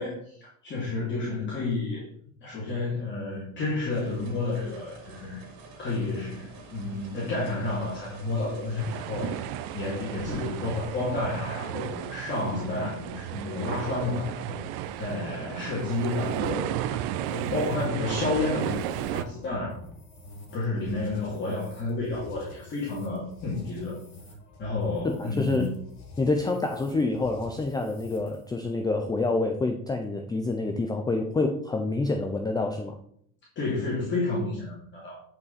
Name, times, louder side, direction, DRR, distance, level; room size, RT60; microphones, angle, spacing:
voice 1, 0.0-2.1 2.4-5.4 5.8-14.6 15.0-19.8 20.5-24.0 24.6-25.7 33.6-35.2, left 3 dB, 30° left, -6 dB, 2.7 m, -31 dB
sound 1, 3.9-17.3, right 3 dB, 60° right, 2.5 m, -49 dB
sound 2, 8.8-19.2, right 11 dB, 80° right, 0.7 m, -33 dB
sound 3, 14.8-28.6, left 1 dB, 50° left, 3.1 m, -48 dB
voice 2, 25.0-25.7 26.2-33.0, left 3 dB, 10° left, 4 dB, 0.5 m, -27 dB
10.0 x 5.2 x 4.1 m, 0.65 s
cardioid pair, 160°, 38 cm